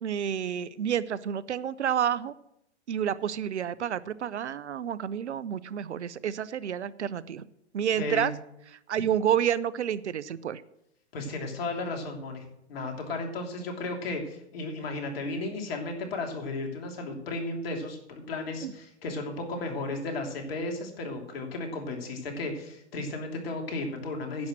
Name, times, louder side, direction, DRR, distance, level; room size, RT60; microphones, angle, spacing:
voice 1, 0.0-2.3 2.9-7.4 7.7-8.3 8.9-10.6 18.6-18.7, right 9 dB, 75° right, 18 dB, 0.8 m, -29 dB
voice 2, 8.0-8.3 11.1-24.5, left 2 dB, 60° left, 3 dB, 3.2 m, -34 dB
10.5 x 7.3 x 7.7 m, 0.79 s
hypercardioid pair, 130°, 34 cm